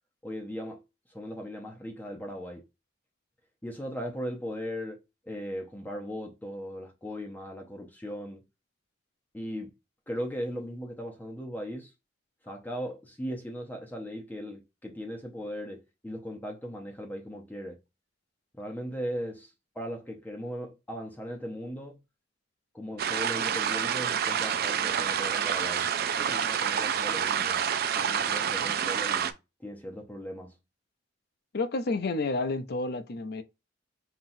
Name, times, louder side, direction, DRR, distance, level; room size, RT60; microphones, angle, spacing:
voice 1, 0.2-2.7 3.6-8.4 9.3-9.8 10.1-11.9 12.4-17.8 18.6-22.0 22.7-27.7 27.9-29.4 29.6-30.6, equal, 10° left, 0.8 m, -38 dB
sound 1, 23.0-29.3, right 8 dB, 55° right, 0.4 m, -28 dB
voice 2, 31.5-33.4, left 3 dB, 55° left, 0.6 m, -30 dB
5.7 x 3.0 x 2.6 m
head